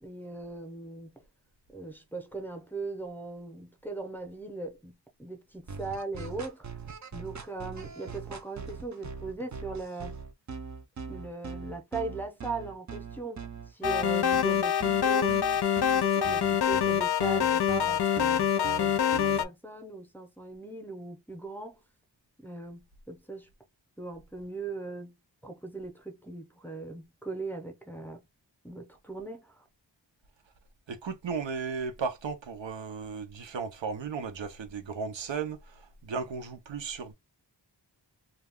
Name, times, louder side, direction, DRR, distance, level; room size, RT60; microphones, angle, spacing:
voice 1, 0.0-1.2 1.7-4.9 5.2-6.7 7.1-10.2 11.1-15.5 15.9-21.8 22.4-23.5 24.0-25.1 25.4-28.2 28.6-29.6, right 3 dB, 5° left, 0.7 m, -39 dB
sound 1, 5.7-19.4, right 5 dB, 40° right, 0.5 m, -41 dB
sound 2, 13.8-19.4, left 9 dB, 60° left, 0.5 m, -25 dB
voice 2, 30.9-37.1, right 5 dB, 85° right, 0.7 m, -35 dB
2.3 x 2.3 x 3.4 m
wide cardioid pair, 75°, 44 cm